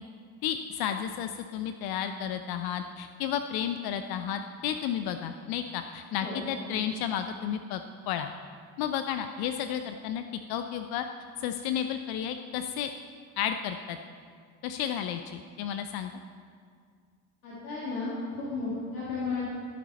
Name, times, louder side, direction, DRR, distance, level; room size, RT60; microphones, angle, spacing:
voice 1, 0.4-7.8 8.1-8.3 8.8-10.2 10.5-11.1 11.4-12.9 13.4-14.0 14.6-16.1, left 9 dB, 60° left, 8 dB, 0.6 m, -32 dB
voice 2, 6.2-6.7 17.4-19.4, left 3 dB, 85° left, -8 dB, 2.2 m, -34 dB
16.0 x 8.5 x 4.2 m, 2.1 s
hypercardioid pair, 55°, 42 cm